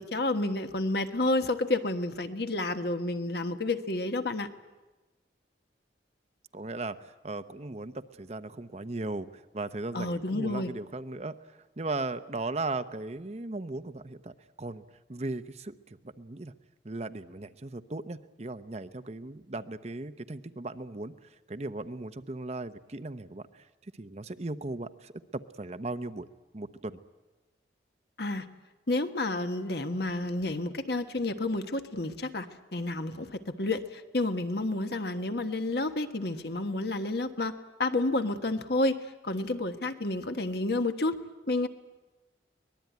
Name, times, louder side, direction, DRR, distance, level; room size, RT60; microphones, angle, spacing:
voice 1, 0.0-4.5 9.9-10.7 28.2-28.5 28.9-37.5 37.8-39.0 39.2-41.2 41.5-41.7, left 2 dB, 60° left, 7 dB, 1.4 m, -30 dB
voice 2, 6.5-14.8 15.1-16.5 16.8-26.3 26.5-27.0, right 2 dB, 35° right, 11 dB, 0.8 m, -37 dB
24.0 x 20.0 x 9.4 m, 1.2 s
head